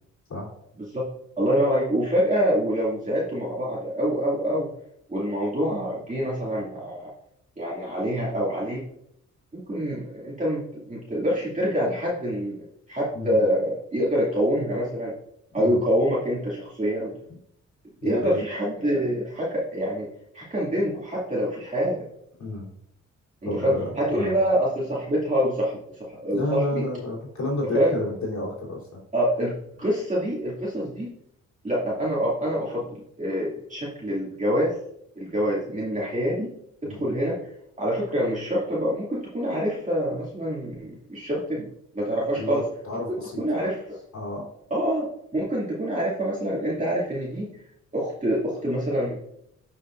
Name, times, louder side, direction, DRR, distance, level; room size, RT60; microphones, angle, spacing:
voice 1, 1.4-4.7 5.1-7.1 7.6-8.8 9.5-15.1 15.5-17.1 18.0-20.1 20.3-22.0 23.6-26.8 27.7-28.0 29.1-29.5 29.8-31.1 31.6-34.8 35.2-36.5 36.8-37.4 37.8-41.7 41.9-42.6 43.4-44.0 44.7-47.5 47.9-49.2, equal, 25° right, -6 dB, 2.4 m, -26 dB
voice 2, 18.0-18.4 22.4-22.7 23.4-24.3 26.3-28.9 36.8-37.1 42.4-43.7 44.1-44.4, left 2 dB, 65° left, -4 dB, 3.2 m, -31 dB
12.0 x 5.7 x 2.6 m, 0.74 s
cardioid pair, 75°, 30 cm